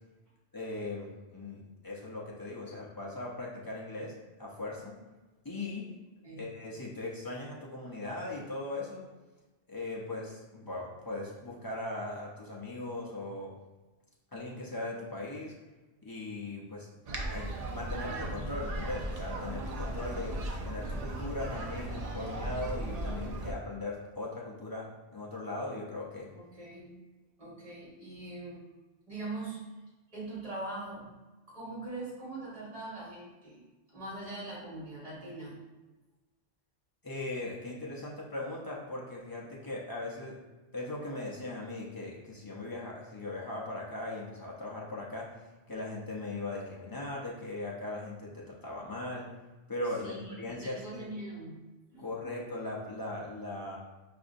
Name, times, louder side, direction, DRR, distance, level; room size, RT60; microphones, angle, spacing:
voice 1, 0.5-4.1 4.4-4.9 5.4-5.8 6.3-9.0 9.7-13.5 14.3-15.5 16.0-16.9 17.3-20.3 20.6-24.9 25.1-26.3 37.0-40.3 40.7-45.3 45.7-49.3 49.7-51.1 52.0-53.8, left 2 dB, 30° left, -4 dB, 0.4 m, -39 dB
sound 1, 17.1-23.5, right 1 dB, 60° right, 0.4 m, -37 dB
voice 2, 26.3-26.9 27.4-28.6 29.1-29.6 30.1-31.1 31.5-33.6 33.9-35.6 50.0-51.5 51.9-52.3, right 2 dB, 30° right, -8 dB, 1.5 m, -42 dB
4.8 x 2.6 x 2.5 m, 1.2 s
omnidirectional pair, 1.2 m